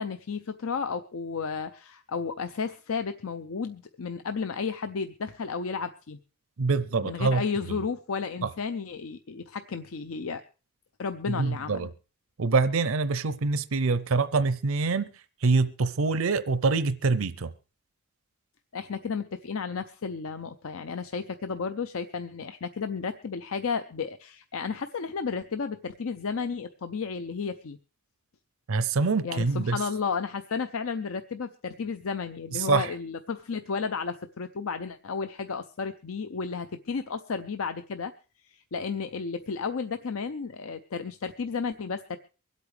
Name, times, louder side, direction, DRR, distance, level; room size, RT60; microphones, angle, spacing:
voice 1, 0.0-6.2 7.0-10.4 11.0-11.9 18.7-27.8 29.2-38.1 38.4-42.2, left 5 dB, 75° left, 0.6 m, -33 dB
voice 2, 6.6-7.8 8.4-8.5 11.3-11.9 12.4-15.1 15.4-17.5 28.7-29.8 32.5-32.9, right 4 dB, 75° right, 0.6 m, -25 dB
24.0 x 8.4 x 3.3 m
head